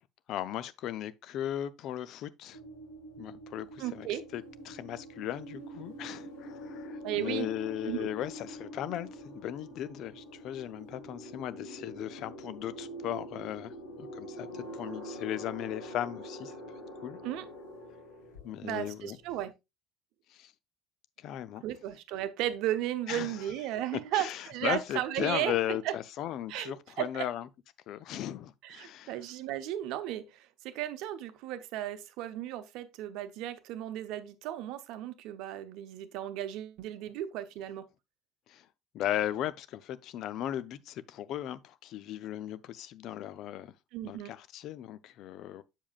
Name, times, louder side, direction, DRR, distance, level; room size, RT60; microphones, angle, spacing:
voice 1, 0.3-2.6 3.2-4.1 4.3-16.5 17.0-17.2 18.4-19.2 20.3-20.5 21.2-21.6 23.1-23.4 24.1-27.5 27.9-29.2 38.5-38.7 38.9-43.7 44.0-45.6, left 12 dB, 55° left, 0.5 m, -37 dB
sound 1, 2.5-19.4, equal, 75° left, 1.9 m, -45 dB
voice 2, 3.8-4.2 7.0-7.5 7.9-8.1 17.2-17.5 18.6-19.5 21.6-25.6 25.8-25.9 26.5-27.3 28.6-37.9 43.9-44.3, right 12 dB, 60° right, 0.8 m, -35 dB
7.3 x 7.2 x 2.4 m
figure-of-eight pair, 60°, 0 cm